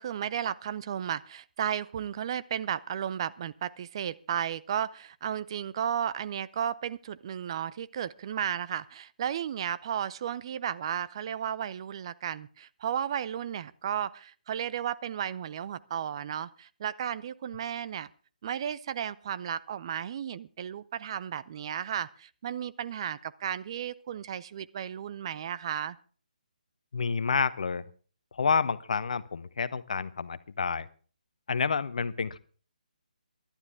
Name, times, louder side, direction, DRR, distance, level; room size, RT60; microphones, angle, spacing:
voice 1, 0.0-18.1 18.4-26.0, right 9 dB, 35° right, 16 dB, 0.6 m, -34 dB
voice 2, 26.9-27.8 28.3-30.9 31.5-32.4, left 5 dB, 55° left, 16 dB, 0.9 m, -29 dB
23.5 x 11.5 x 3.6 m, 0.41 s
figure-of-eight pair, 140°, 5 cm